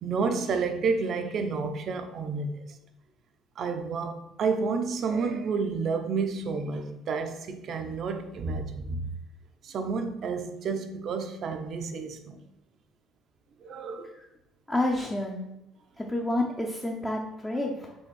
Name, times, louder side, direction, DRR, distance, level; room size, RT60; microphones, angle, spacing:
voice 1, 0.0-2.8 3.6-9.1 9.6-12.4 13.6-14.2, right 4 dB, 40° right, 0.7 m, -30 dB
voice 2, 14.7-15.5 16.0-17.9, left 1 dB, 5° left, 0.7 m, -29 dB
6.4 x 3.5 x 6.1 m
cardioid pair, 170°, 0 cm